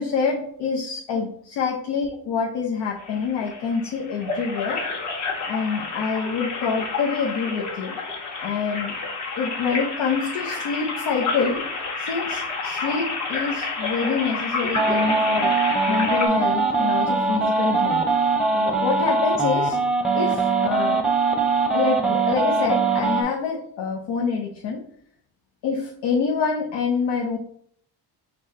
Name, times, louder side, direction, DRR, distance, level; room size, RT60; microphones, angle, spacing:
voice 1, 0.0-4.8 5.5-8.0 8.4-8.9 9.4-11.6 12.0-15.6 15.9-18.0 18.5-19.8 20.1-21.0 21.7-24.8 25.6-27.4, left 5 dB, 80° left, -1 dB, 0.8 m, -26 dB
sound 1, 3.0-16.3, left 4 dB, 45° left, 1.2 m, -30 dB
sound 2, 14.7-23.2, right 3 dB, ahead, 0.7 m, -22 dB
4.8 x 2.2 x 3.7 m, 0.65 s
cardioid pair, 100°, 40 cm